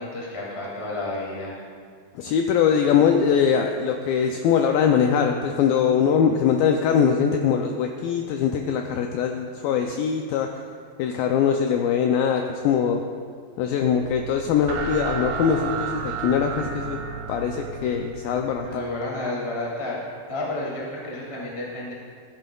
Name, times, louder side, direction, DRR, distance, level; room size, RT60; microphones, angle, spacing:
voice 1, 0.0-1.6 18.6-20.0 20.3-21.9, left 2 dB, 25° left, -5 dB, 0.6 m, -31 dB
voice 2, 2.2-10.5 11.0-13.0 13.6-17.0 17.3-18.8, left 7 dB, 85° left, 4 dB, 2.1 m, -22 dB
sound 1, 14.1-19.0, right 5 dB, 85° right, 2.9 m, -33 dB
15.0 x 9.1 x 2.3 m, 2.1 s
omnidirectional pair, 4.6 m